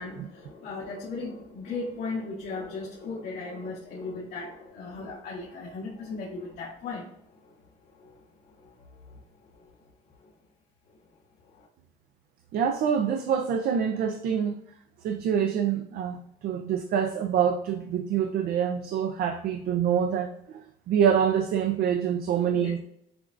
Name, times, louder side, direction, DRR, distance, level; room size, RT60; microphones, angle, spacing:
voice 1, 0.0-7.1 7.4-7.5 8.0-8.1 8.6-9.2 9.6-9.7 11.5-11.7 22.6-22.7, left 3 dB, 75° left, -6 dB, 1.4 m, -37 dB
voice 2, 12.5-14.5 15.0-22.8, right 8 dB, 65° right, 5 dB, 0.5 m, -26 dB
6.8 x 2.4 x 2.5 m, 0.73 s
cardioid pair, 110°, 17 cm